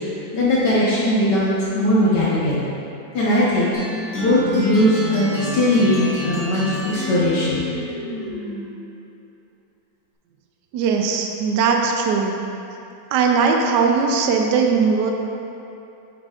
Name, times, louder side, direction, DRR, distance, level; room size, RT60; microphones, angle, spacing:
voice 1, 0.0-2.6 3.1-7.7, left 1 dB, 65° left, -8 dB, 1.6 m, -19 dB
sound 1, 3.7-8.8, left 1 dB, 45° left, 2.0 m, -29 dB
voice 2, 10.7-12.4 13.1-15.1, right 5 dB, 70° right, 2 dB, 1.2 m, -19 dB
8.7 x 8.5 x 2.4 m, 2.8 s
omnidirectional pair, 2.1 m